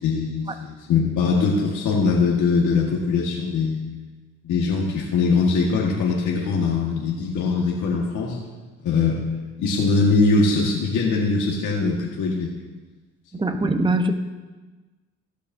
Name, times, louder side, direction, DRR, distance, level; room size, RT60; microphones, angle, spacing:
voice 1, 0.0-3.8 4.4-8.4 8.8-9.2 9.6-12.5, left 4 dB, 80° left, -3 dB, 1.7 m, -21 dB
voice 2, 13.3-14.1, right 2 dB, 15° right, 6 dB, 0.9 m, -22 dB
15.5 x 12.0 x 2.7 m, 1.3 s
cardioid pair, 90°, 30 cm